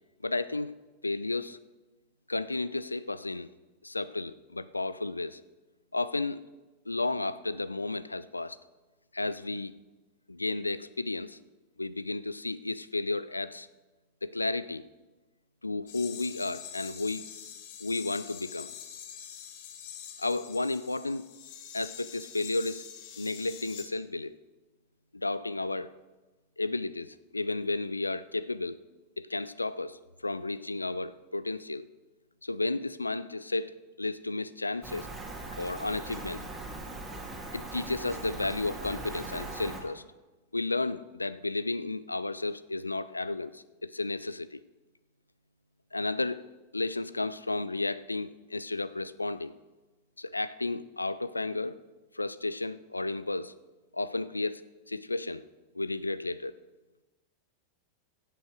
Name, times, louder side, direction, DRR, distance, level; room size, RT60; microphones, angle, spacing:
voice 1, 0.2-0.7 1.0-1.6 2.3-3.5 3.8-5.4 5.9-6.4 6.9-8.6 9.1-9.7 10.3-11.4 11.8-13.7 14.2-14.8 15.6-17.3 17.8-18.7 20.2-21.2 21.7-22.8 23.2-24.4 25.1-25.9 26.6-28.8 29.2-31.9 32.4-35.1 35.6-36.4 37.5-40.0 40.5-44.6 45.9-46.4 46.7-49.5 50.2-51.8 52.1-53.5 53.9-54.6 54.9-55.4 55.7-56.5, left 2 dB, 80° left, 17 dB, 0.4 m, -33 dB
sound 1, 15.9-23.9, left 9 dB, 50° left, 1.2 m, -45 dB
Rain, 34.8-39.8, right 2 dB, 10° right, 2.2 m, -40 dB
15.5 x 8.1 x 4.6 m, 1.2 s
figure-of-eight pair, 90°, 0 cm